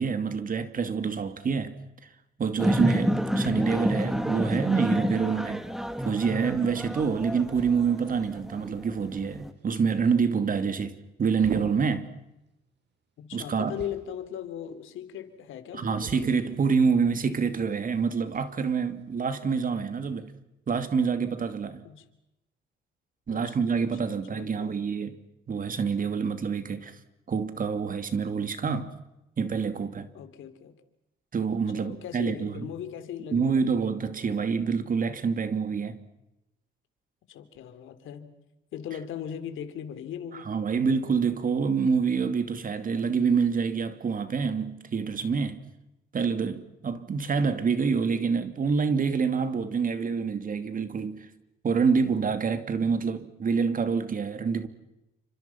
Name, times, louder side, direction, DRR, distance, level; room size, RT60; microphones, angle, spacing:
voice 1, 0.0-1.7 2.4-5.7 6.0-12.1 13.3-13.7 15.7-20.3 20.7-21.8 23.3-25.1 25.5-26.9 27.3-28.9 29.4-30.1 31.3-32.7 33.3-36.0 40.5-45.6 46.1-51.3 51.6-54.7, right 5 dB, 45° right, 2.8 m, -27 dB
sound 1, 2.6-9.5, equal, ahead, 2.1 m, -29 dB
sound 2, 7.3-19.6, right 5 dB, 60° right, 6.9 m, -47 dB
voice 2, 13.2-16.1 16.4-16.6 21.8-22.0 23.3-24.8 30.1-30.7 31.7-33.8 37.3-38.4 38.7-40.5, left 9 dB, 80° left, 3.2 m, -39 dB
29.5 x 26.0 x 6.0 m
cardioid pair, 90°, 20 cm